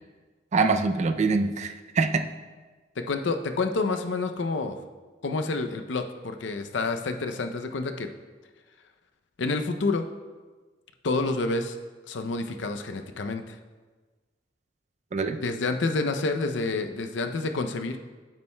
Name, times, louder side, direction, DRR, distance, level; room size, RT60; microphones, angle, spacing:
voice 1, 0.5-2.3 15.1-15.4, right 4 dB, 40° right, 8 dB, 0.4 m, -24 dB
voice 2, 3.0-4.8 5.2-8.1 9.4-10.0 11.0-11.8 12.1-13.6 15.3-18.0, left 3 dB, 70° left, 6 dB, 0.5 m, -28 dB
9.0 x 8.4 x 2.2 m, 1.3 s
head